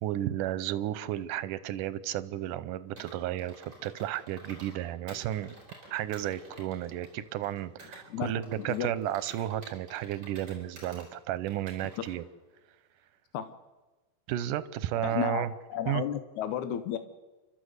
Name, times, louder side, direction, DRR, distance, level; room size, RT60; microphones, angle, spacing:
voice 1, 0.0-5.5 5.9-12.2 14.3-15.5 15.9-16.0, right 12 dB, 85° right, 16 dB, 2.4 m, -33 dB
Computer keyboard, 3.0-4.8 5.1-8.0 8.4-11.1 11.5-12.1, right 1 dB, 35° right, 6.2 m, -51 dB
voice 2, 8.6-8.9 13.3-13.5 15.0-17.0, left 10 dB, 75° left, 10 dB, 2.2 m, -33 dB
29.5 x 13.0 x 8.1 m, 1.2 s
omnidirectional pair, 3.6 m